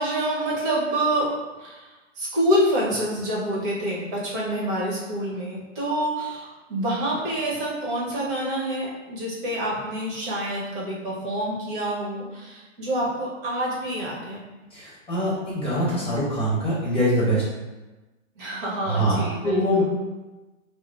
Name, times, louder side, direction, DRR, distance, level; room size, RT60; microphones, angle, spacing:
voice 1, 0.0-1.3 1.6-14.4 18.3-19.8, right 1 dB, 40° right, -6 dB, 1.3 m, -27 dB
voice 2, 14.7-17.4 18.8-19.8, equal, 15° left, -8 dB, 1.1 m, -23 dB
4.6 x 2.0 x 2.6 m, 1.1 s
hypercardioid pair, 120°, 38 cm